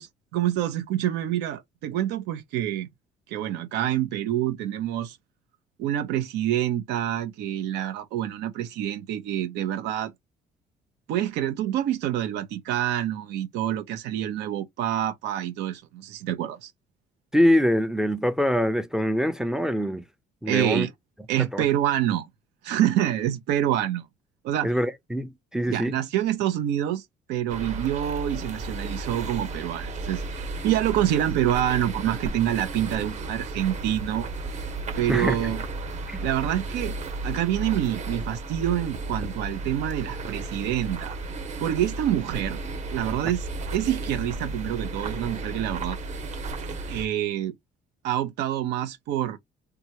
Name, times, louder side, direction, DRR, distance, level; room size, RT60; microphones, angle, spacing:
voice 1, 0.0-2.9 3.3-5.2 5.8-10.1 11.1-16.7 20.5-20.9 21.3-22.3 22.6-24.1 24.4-24.8 25.7-34.3 35.0-35.6 36.2-36.9 37.2-41.2 41.6-42.6 42.9-46.0 46.9-47.5 48.0-49.4, right 12 dB, 85° right, 0.6 m, -27 dB
voice 2, 17.3-20.0 20.4-20.9 21.5-21.6 24.6-25.9 35.1-35.4 36.1-36.2, equal, 5° right, 0.4 m, -24 dB
sound 1, 27.5-47.1, right 2 dB, 45° right, 1.0 m, -34 dB
2.8 x 2.3 x 2.7 m
cardioid pair, 110°, 17 cm